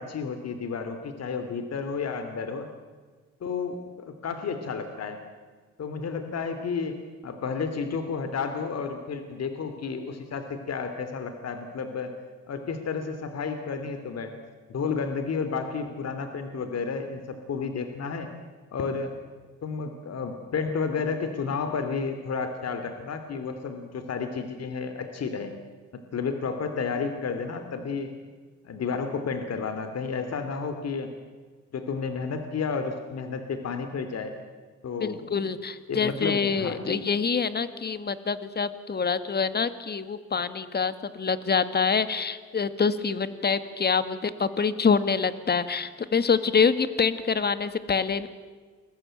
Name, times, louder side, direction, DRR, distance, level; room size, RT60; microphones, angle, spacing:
voice 1, 0.0-2.7 3.4-5.2 5.8-12.1 12.5-14.3 14.7-18.3 18.7-19.1 19.6-25.5 25.9-28.1 28.6-31.1 31.7-34.3 34.8-35.4 35.9-37.1, left 5 dB, 55° left, 8 dB, 2.9 m, -31 dB
voice 2, 35.0-48.3, left 5 dB, 35° left, 13 dB, 1.9 m, -26 dB
29.0 x 22.5 x 9.0 m, 1.4 s
cardioid pair, 90°, 30 cm